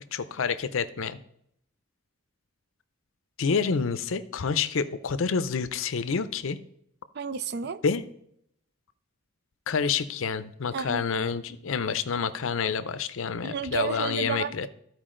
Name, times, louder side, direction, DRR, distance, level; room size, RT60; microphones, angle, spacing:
voice 1, 0.1-1.2 3.4-6.6 7.8-8.0 9.7-14.7, left 5 dB, 65° left, 0.5 m, -28 dB
voice 2, 7.1-7.8 10.7-11.0 13.4-14.7, right 7 dB, 50° right, 0.4 m, -31 dB
14.0 x 4.7 x 3.8 m
head